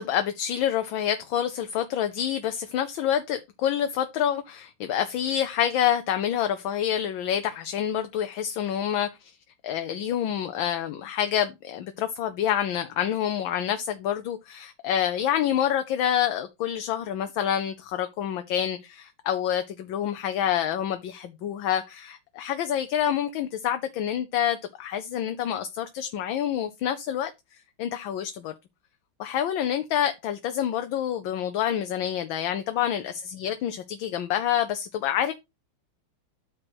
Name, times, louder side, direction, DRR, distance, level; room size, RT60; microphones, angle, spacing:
voice 1, 0.0-9.4 9.6-27.3 27.8-28.5 29.2-35.3, left 10 dB, 70° left, 1.4 m, -27 dB
8.8 x 3.3 x 6.1 m
omnidirectional pair, 2.3 m